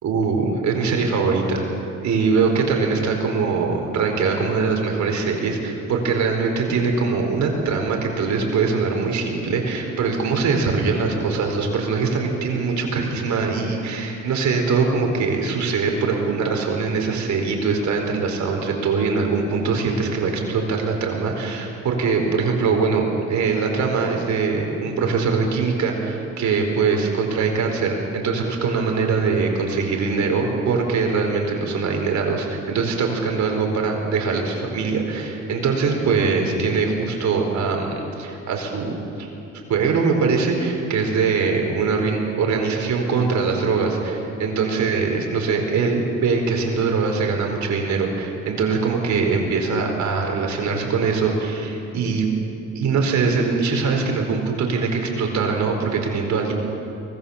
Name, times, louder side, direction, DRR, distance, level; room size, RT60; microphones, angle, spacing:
voice 1, 0.0-1.7 2.0-39.3 39.7-52.3 52.7-56.5, right 4 dB, 65° right, 2 dB, 4.4 m, -22 dB
23.5 x 19.0 x 7.2 m, 2.8 s
cardioid pair, 90°, 30 cm